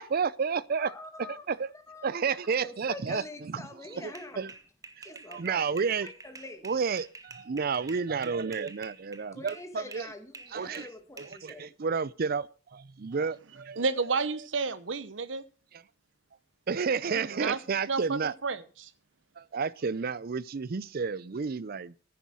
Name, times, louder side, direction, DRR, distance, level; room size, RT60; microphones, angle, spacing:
voice 1, 0.0-1.7 2.0-3.6 3.9-4.5 5.0-6.1 6.6-10.1 10.5-10.9 11.2-13.8 16.7-18.3 19.4-21.9, right 5 dB, 55° right, 0.5 m, -31 dB
voice 2, 0.8-1.5 1.7-2.4 2.6-4.5 5.0-5.6 6.0-6.7 9.3-11.7, left 2 dB, 15° left, 1.8 m, -45 dB
sound 1, 4.1-9.7 9.9-11.5, right 3 dB, 20° right, 1.2 m, -48 dB
voice 3, 13.8-15.4 17.1-17.6 17.9-18.9, right 4 dB, 85° right, 1.0 m, -31 dB
10.5 x 9.3 x 6.2 m
head